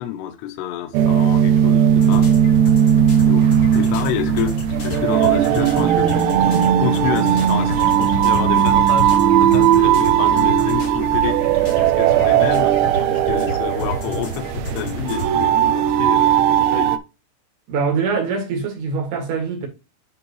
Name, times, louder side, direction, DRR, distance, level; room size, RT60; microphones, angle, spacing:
voice 1, 0.0-2.3 3.3-3.5 3.7-11.4 11.8-12.8 13.0-17.0, left 10 dB, 75° left, 2.8 m, -28 dB
sound 1, 0.9-17.0, right 10 dB, 85° right, 2.5 m, -17 dB
sound 2, 2.0-15.5, left 2 dB, 40° left, 2.1 m, -29 dB
voice 2, 17.7-19.7, right 5 dB, 60° right, 3.9 m, -23 dB
10.5 x 3.9 x 3.1 m
omnidirectional pair, 5.5 m